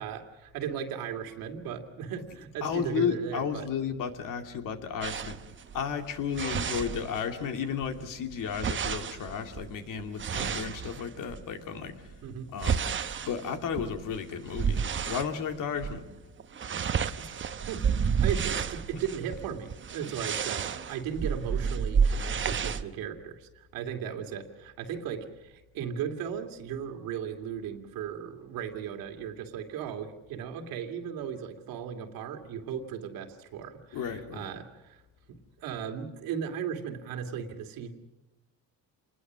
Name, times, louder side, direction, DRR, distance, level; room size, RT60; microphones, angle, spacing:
voice 1, 0.0-3.7 7.9-8.0 12.2-12.5 16.7-16.9 17.2-17.3 17.7-35.0 35.3-37.9, right 8 dB, 90° right, 5 dB, 2.6 m, -37 dB
voice 2, 2.6-5.4 5.7-12.1 12.5-12.8 13.3-16.1 33.9-34.5, left 7 dB, 70° left, 6 dB, 2.6 m, -33 dB
sound 1, 5.0-7.5 7.8-11.5 12.0-15.3 15.7-16.0 16.3-22.8, right 6 dB, 35° right, 0.9 m, -31 dB
27.5 x 20.5 x 6.3 m, 1.0 s
cardioid pair, 120°, 34 cm